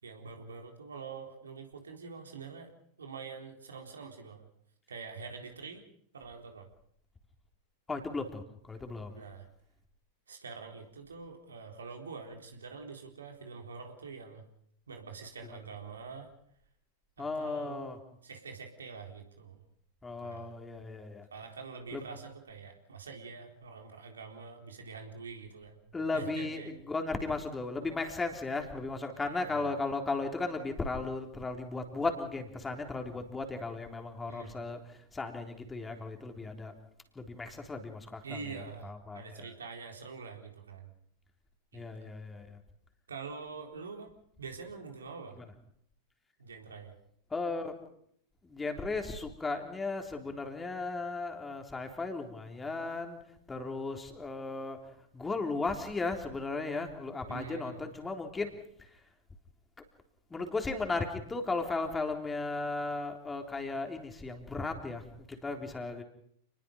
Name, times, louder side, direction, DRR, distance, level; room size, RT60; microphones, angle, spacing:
voice 1, 0.0-2.7 3.0-4.5 4.9-5.8 6.1-6.7 9.2-9.5 10.3-14.4 14.9-16.3 17.2-19.6 20.2-20.5 21.3-25.8 26.1-26.7 29.1-29.7 34.3-34.6 38.2-40.9 41.7-42.1 43.1-44.1 44.4-45.4 46.4-46.9 57.3-57.8, right 5 dB, 75° right, 3 dB, 4.0 m, -45 dB
voice 2, 7.9-9.2 17.2-18.0 20.0-21.3 21.9-22.0 25.9-26.6 26.9-36.7 37.2-38.4 38.8-39.5 41.7-42.6 47.3-47.8 48.4-53.2 53.5-54.8 55.1-58.5 58.8-58.9 60.3-66.0, left 3 dB, 15° left, 4 dB, 3.6 m, -36 dB
29.0 x 21.0 x 5.3 m, 0.68 s
figure-of-eight pair, 95°, 0 cm